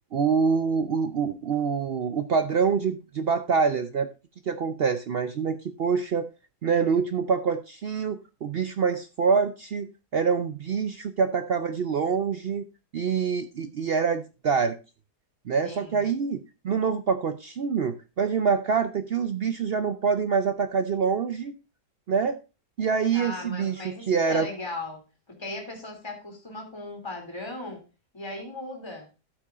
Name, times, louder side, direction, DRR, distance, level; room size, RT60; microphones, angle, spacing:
voice 1, 0.1-4.1 4.5-6.3 6.6-12.6 12.9-14.8 15.5-21.6 22.1-22.4 22.8-24.5, right 6 dB, 80° right, 9 dB, 0.5 m, -26 dB
voice 2, 15.6-16.1 23.1-25.0 25.3-27.8 28.1-29.1, left 2 dB, 15° left, 2 dB, 2.7 m, -37 dB
13.0 x 8.5 x 2.4 m, 0.28 s
omnidirectional pair, 1.8 m